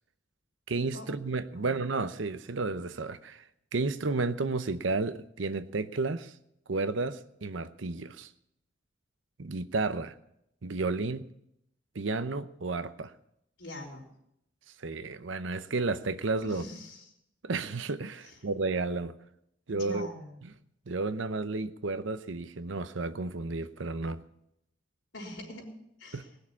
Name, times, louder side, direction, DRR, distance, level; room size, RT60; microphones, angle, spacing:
voice 1, 0.7-3.4 3.7-6.3 6.7-8.3 9.4-10.1 10.6-11.3 11.9-13.1 14.8-16.6 17.4-19.1 19.7-20.1 20.4-20.5 20.9-24.2 26.1-26.2, right 3 dB, 80° right, 12 dB, 0.8 m, -32 dB
voice 2, 13.6-14.1 16.4-17.0 19.7-20.4 25.1-25.6 26.0-26.3, left 1 dB, 90° left, -2 dB, 3.9 m, -42 dB
19.0 x 6.6 x 8.4 m, 0.79 s
head